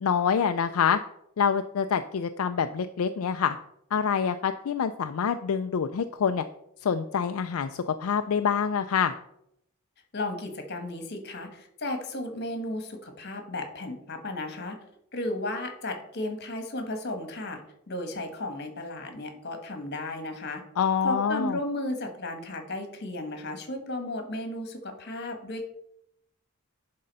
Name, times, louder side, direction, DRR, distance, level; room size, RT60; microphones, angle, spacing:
voice 1, 0.0-1.0 1.4-3.6 3.9-6.4 6.8-9.1 20.8-21.6, left 7 dB, 75° left, 8 dB, 0.4 m, -26 dB
voice 2, 10.1-14.8 15.1-17.6 17.9-20.6 21.0-25.6, left 2 dB, 50° left, 6 dB, 1.5 m, -34 dB
11.0 x 3.8 x 5.4 m, 0.76 s
head